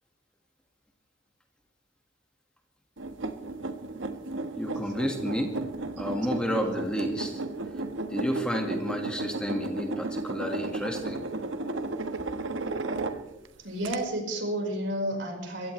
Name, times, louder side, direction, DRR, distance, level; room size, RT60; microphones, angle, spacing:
sound 1, 3.0-13.5 13.8-14.0, right 2 dB, 85° right, 1.3 m, -34 dB
voice 1, 4.5-5.5 6.0-7.4 8.1-11.2, equal, 5° left, 2 dB, 1.8 m, -31 dB
voice 2, 13.6-15.7, right 1 dB, 70° right, 1 dB, 4.9 m, -31 dB
23.0 x 16.5 x 3.3 m, 0.97 s
head